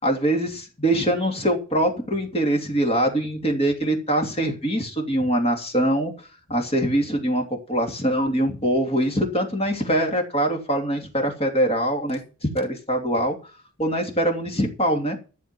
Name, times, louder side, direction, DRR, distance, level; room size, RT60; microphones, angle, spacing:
voice 1, 0.0-13.4 13.8-15.2, right 1 dB, 30° left, 3 dB, 3.0 m, -23 dB
14.5 x 7.1 x 7.7 m, 0.34 s
head